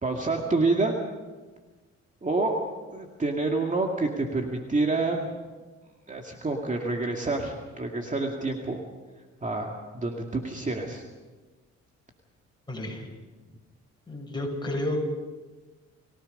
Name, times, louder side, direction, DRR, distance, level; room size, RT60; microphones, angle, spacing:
voice 1, 0.0-0.9 2.2-2.6 2.9-5.3 6.1-8.8 9.4-11.0, right 3 dB, 25° right, 1 dB, 2.3 m, -28 dB
voice 2, 12.7-13.1 14.1-15.1, left 1 dB, 15° left, 0 dB, 7.6 m, -31 dB
29.0 x 18.0 x 5.5 m, 1.3 s
cardioid pair, 90°, 30 cm